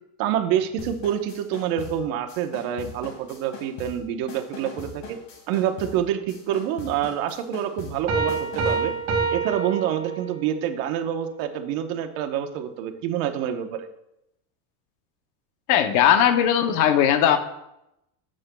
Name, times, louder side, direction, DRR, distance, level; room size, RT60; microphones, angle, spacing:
voice 1, 0.2-5.2 5.5-8.9 9.3-13.9, right 10 dB, 60° right, 6 dB, 1.0 m, -27 dB
sound 1, 0.8-8.9, left 5 dB, 70° left, 2.3 m, -42 dB
Piano, 8.1-10.6, right 5 dB, 30° right, 1.9 m, -26 dB
voice 2, 15.7-17.4, left 9 dB, 40° left, 8 dB, 0.7 m, -18 dB
12.5 x 7.5 x 2.3 m, 0.85 s
cardioid pair, 170°, 47 cm